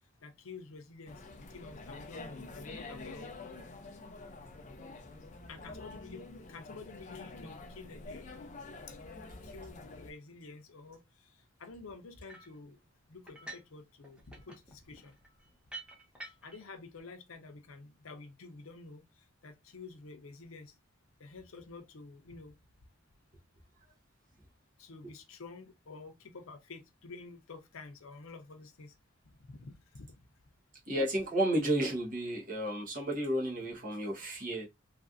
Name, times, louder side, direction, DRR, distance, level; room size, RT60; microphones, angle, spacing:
voice 1, 0.2-3.3 5.5-8.5 8.9-9.0 9.4-11.3 11.6-12.8 13.1-15.1 16.2-20.7 21.2-22.5 24.8-28.9 29.3-30.2, left 3 dB, 85° left, 0.6 m, -50 dB
sound 1, 1.1-10.1, left 3 dB, 35° left, 0.4 m, -47 dB
sound 2, 12.3-12.6 13.3-13.8 14.0-16.7, right 2 dB, 5° right, 0.7 m, -48 dB
voice 2, 30.9-34.7, right 1 dB, 40° right, 1.1 m, -32 dB
3.1 x 2.5 x 2.4 m
head